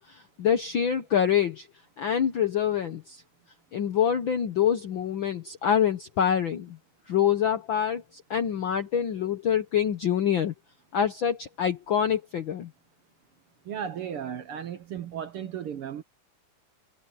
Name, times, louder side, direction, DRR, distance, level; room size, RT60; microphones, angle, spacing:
voice 1, 0.0-1.7 2.0-3.2 3.7-6.8 7.1-10.5 10.9-12.7, left 8 dB, 65° left, 1.2 m, -26 dB
voice 2, 13.6-16.0, right 8 dB, 60° right, 1.5 m, -35 dB
omnidirectional pair, 3.4 m